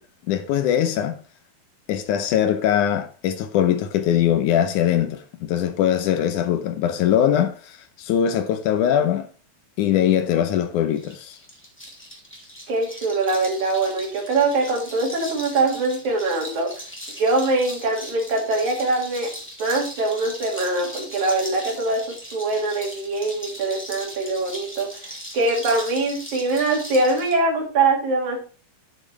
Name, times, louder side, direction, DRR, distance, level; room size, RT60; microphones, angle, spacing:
voice 1, 0.3-1.2 1.9-9.3 9.8-11.4, left 10 dB, 75° left, 1.9 m, -21 dB
sound 1, 11.0-27.4, equal, 5° left, 1.8 m, -38 dB
voice 2, 12.7-16.7 17.2-19.3 19.6-22.0 22.3-28.5, right 2 dB, 55° right, 3.3 m, -23 dB
10.5 x 6.6 x 3.2 m
omnidirectional pair, 4.2 m